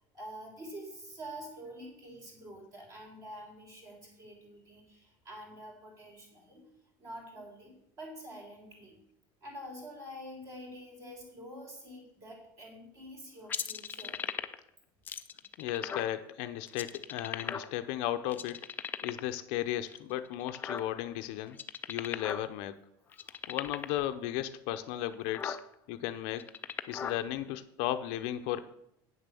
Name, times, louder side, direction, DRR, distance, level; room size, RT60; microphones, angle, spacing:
voice 1, 0.1-6.7 7.0-9.0 9.4-14.2, equal, 30° right, 1 dB, 3.3 m, -47 dB
sound 1, 13.5-14.7 15.1-16.1 16.7-17.9 18.3-19.3 19.9-21.1 21.5-22.5 22.7-22.8 23.1-24.0 24.7-24.8 25.1-25.6 26.3-27.2, left 7 dB, 15° left, 0.4 m, -37 dB
voice 2, 15.6-18.6 19.0-21.6 21.9-22.7 23.5-25.6 25.9-26.4 26.9-28.6, left 13 dB, 60° left, 10 dB, 0.6 m, -35 dB
8.7 x 6.9 x 6.8 m, 0.76 s
cardioid pair, 180°, 11 cm